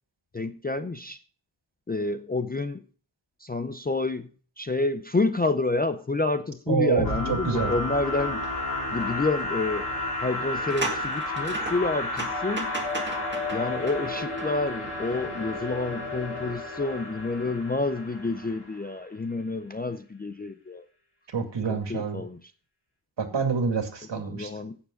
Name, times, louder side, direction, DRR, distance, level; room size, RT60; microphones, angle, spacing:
voice 1, 0.3-1.2 1.9-2.8 3.4-4.3 4.6-8.6 8.9-9.9 10.2-12.7 13.5-20.8 21.7-22.5 24.2-24.8, left 3 dB, 20° left, 0.4 m, -29 dB
voice 2, 6.7-7.7 21.3-22.2 23.2-24.5, right 5 dB, 55° right, 2.3 m, -27 dB
sound 1, 7.0-18.7, left 2 dB, 50° left, 4.4 m, -32 dB
sound 2, 8.4-8.5 9.0-9.1 10.4-15.0 15.4-15.5, right 3 dB, 20° right, 1.8 m, -37 dB
16.0 x 7.1 x 3.8 m
wide cardioid pair, 170°, 50 cm